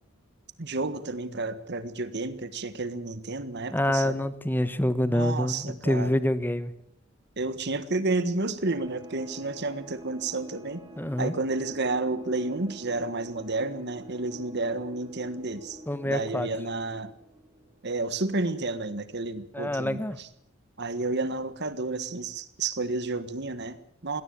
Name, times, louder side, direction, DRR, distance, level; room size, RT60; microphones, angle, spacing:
voice 1, 0.6-4.2 5.1-6.1 7.4-10.8 11.2-15.8 16.1-17.1 17.8-20.3 20.8-24.2, right 3 dB, 55° right, 13 dB, 1.5 m, -31 dB
voice 2, 3.7-6.7 11.0-11.3 15.9-16.5 19.5-20.2, left 1 dB, 10° left, 14 dB, 1.1 m, -26 dB
sound 1, 8.7-18.0, right 1 dB, 20° right, 2.2 m, -48 dB
20.0 x 17.5 x 8.7 m, 0.70 s
head